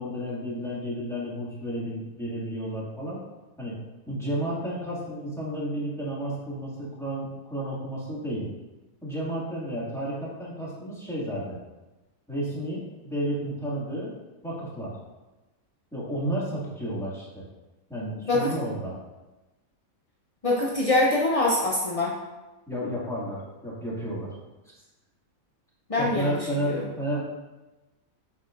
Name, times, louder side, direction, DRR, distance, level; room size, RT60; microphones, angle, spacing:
voice 1, 0.0-3.2 3.6-3.8 4.1-8.5 9.0-11.6 12.3-14.1 14.4-15.0 15.9-17.5 17.9-19.0 22.7-24.4 25.9-27.2, right 1 dB, ahead, -8 dB, 1.9 m, -32 dB
voice 2, 20.4-22.1 25.9-26.4 26.7-26.8, left 2 dB, 45° left, -3 dB, 0.5 m, -24 dB
8.1 x 5.8 x 2.5 m, 1.1 s
omnidirectional pair, 1.5 m